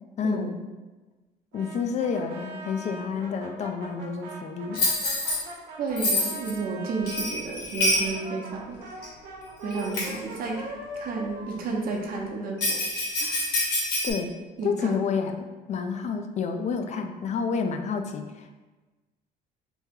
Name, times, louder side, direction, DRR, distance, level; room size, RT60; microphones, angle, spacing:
voice 1, 0.2-0.6 1.5-4.9 14.0-14.4 14.6-18.6, left 5 dB, 45° left, 6 dB, 0.4 m, -29 dB
Brass instrument, 1.5-7.3 7.9-12.6, right 1 dB, 90° right, 0.9 m, -42 dB
Bell, 4.7-5.4 6.0-6.5 7.1-8.1 9.0-9.1 9.7-10.2 12.6-14.1, left 1 dB, 70° left, 1.4 m, -26 dB
voice 2, 5.8-9.1 9.6-10.7 10.9-12.8 13.2-13.5 14.6-14.9, right 4 dB, 60° right, 0 dB, 0.8 m, -32 dB
3.0 x 2.7 x 3.6 m, 1.2 s
cardioid pair, 110°, 17 cm